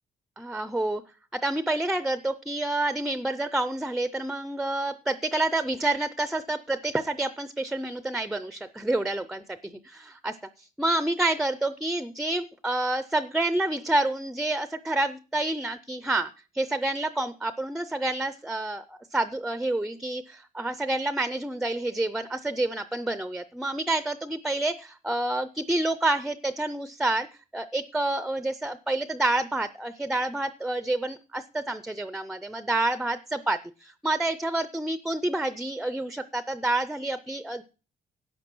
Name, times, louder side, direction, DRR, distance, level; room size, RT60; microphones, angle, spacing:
voice 1, 0.4-1.0 1.3-9.6 9.8-27.3 27.5-37.6, right 2 dB, 5° right, 13 dB, 0.4 m, -28 dB
11.5 x 7.4 x 6.0 m, 0.35 s
cardioid pair, 165°, 15 cm